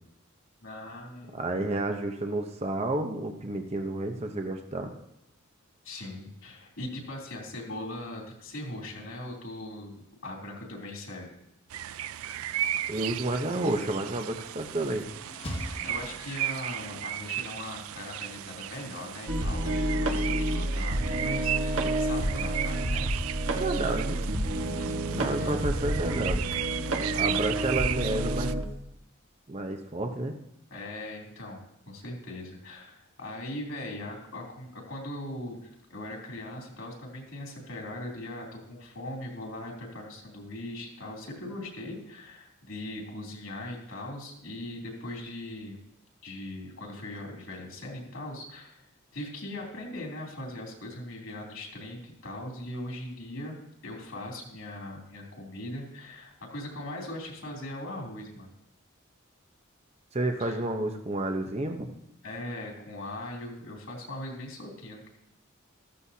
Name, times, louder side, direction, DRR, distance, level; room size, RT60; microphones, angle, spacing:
voice 1, 0.6-1.4 5.8-11.4 15.8-23.0 24.8-25.6 26.9-27.6 30.7-45.8 46.2-48.8 49.1-53.6 53.8-58.5 60.4-60.6 62.2-65.1, left 1 dB, 75° left, -1 dB, 3.2 m, -40 dB
voice 2, 1.3-4.9 12.9-15.1 23.5-24.3 25.2-26.5 27.2-28.5 29.5-30.3 60.1-61.9, right 2 dB, 30° right, 4 dB, 0.8 m, -30 dB
sound 1, 11.7-28.5, right 12 dB, 85° right, 0.4 m, -35 dB
sound 2, 14.6-16.9, equal, 25° left, 1.3 m, -41 dB
sound 3, 19.3-28.6, right 1 dB, 65° right, 1.5 m, -29 dB
14.0 x 14.0 x 2.8 m, 0.82 s
head